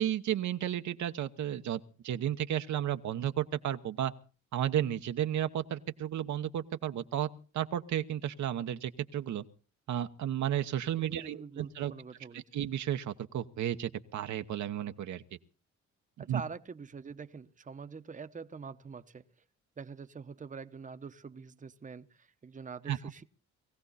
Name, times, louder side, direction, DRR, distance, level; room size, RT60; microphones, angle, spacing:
voice 1, 0.0-4.1 4.5-7.3 7.5-9.4 9.9-11.9 12.3-15.2 16.3-16.4 22.9-23.0, right 11 dB, 70° right, 1.1 m, -33 dB
voice 2, 11.0-12.4 16.2-19.2 19.8-23.2, right 5 dB, 25° right, 1.0 m, -45 dB
20.5 x 15.5 x 4.2 m
cardioid pair, 90°, 30 cm